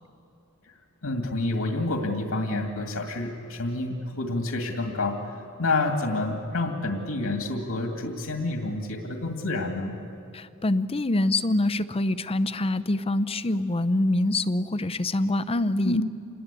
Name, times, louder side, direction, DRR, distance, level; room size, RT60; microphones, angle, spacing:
voice 1, 1.0-5.3 5.6-10.0 15.8-16.0, left 2 dB, 75° left, 3 dB, 2.2 m, -28 dB
voice 2, 10.3-16.0, left 2 dB, 25° left, 12 dB, 0.6 m, -25 dB
27.5 x 20.5 x 8.3 m, 2.8 s
head